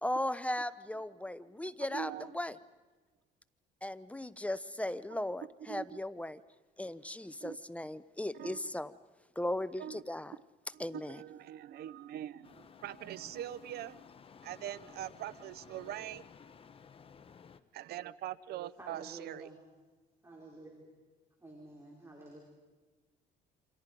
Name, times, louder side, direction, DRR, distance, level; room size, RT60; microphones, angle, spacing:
voice 1, 0.0-2.6 3.8-6.4 6.8-8.9 9.4-10.3 10.8-11.2, left 1 dB, 10° left, 15 dB, 0.6 m, -37 dB
voice 2, 1.9-2.4 5.7-6.0 7.4-7.6 8.3-8.7 9.8-10.0 10.7-14.0 14.4-16.3 17.7-19.5, right 12 dB, 70° right, 18 dB, 0.8 m, -43 dB
sound 1, 12.4-17.6, left 6 dB, 35° left, 1.0 m, -55 dB
voice 3, 18.8-19.6 20.2-20.9 21.4-22.4, right 2 dB, 15° right, -1 dB, 4.6 m, -50 dB
28.5 x 27.0 x 5.3 m, 1.3 s
cardioid pair, 110°, 17 cm